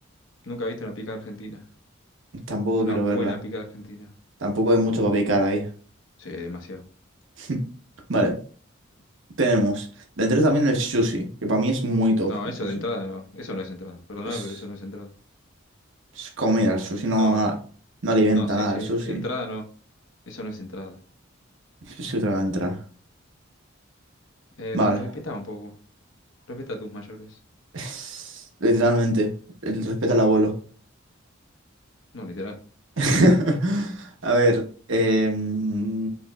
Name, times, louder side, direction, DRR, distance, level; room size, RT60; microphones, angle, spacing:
voice 1, 0.4-1.6 2.8-4.1 6.2-6.8 12.3-15.1 17.2-17.6 18.3-19.7 20.3-21.0 24.6-25.7 26.5-27.4 32.1-32.6, left 1 dB, 70° left, 4 dB, 1.0 m, -34 dB
voice 2, 2.5-3.3 4.4-5.7 7.4-7.6 8.1-8.4 9.4-9.9 10.2-12.3 14.2-14.4 16.2-17.5 18.0-19.2 21.9-22.8 24.7-25.0 27.7-29.3 29.6-30.5 33.0-36.1, right 1 dB, 65° right, 3 dB, 1.0 m, -22 dB
6.9 x 3.1 x 2.3 m, 0.41 s
head